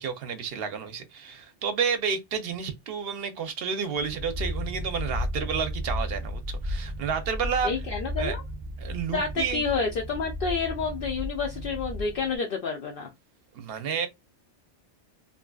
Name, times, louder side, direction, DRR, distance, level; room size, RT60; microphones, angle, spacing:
voice 1, 0.0-7.7 8.2-8.4 8.8-9.6 13.5-14.1, right 6 dB, 65° right, 0.8 m, -30 dB
sound 1, 4.0-12.4, equal, 25° right, 0.5 m, -34 dB
voice 2, 7.6-8.4 9.1-13.1, left 5 dB, 65° left, 0.7 m, -29 dB
2.7 x 2.5 x 2.2 m
omnidirectional pair, 1.1 m